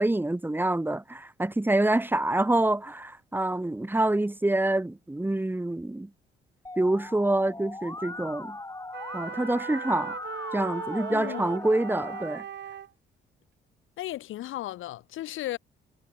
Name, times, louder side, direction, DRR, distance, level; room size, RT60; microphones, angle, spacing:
voice 1, 0.0-6.1 6.8-8.6 9.1-10.2 10.5-12.4, right 1 dB, 10° right, 2.4 m, -26 dB
Musical instrument, 6.6-12.2, left 2 dB, 15° left, 7.3 m, -39 dB
sound 1, 8.9-12.9, right 9 dB, 60° right, 6.0 m, -39 dB
voice 2, 11.1-11.4 14.0-15.6, left 14 dB, 85° left, 6.8 m, -35 dB
cardioid pair, 90°, 20 cm